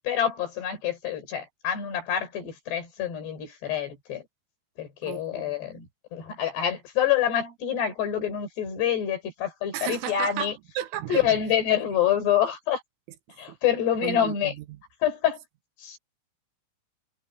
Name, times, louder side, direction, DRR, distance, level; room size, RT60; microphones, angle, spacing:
voice 1, 0.1-4.2 4.8-10.6 11.1-12.8 13.4-14.5 15.0-15.4 15.8-16.0, left 10 dB, 55° left, 6.4 m, -27 dB
voice 2, 5.1-5.5 9.7-11.2 14.0-14.3, right 13 dB, 80° right, 3.7 m, -33 dB
omnidirectional pair, 5.9 m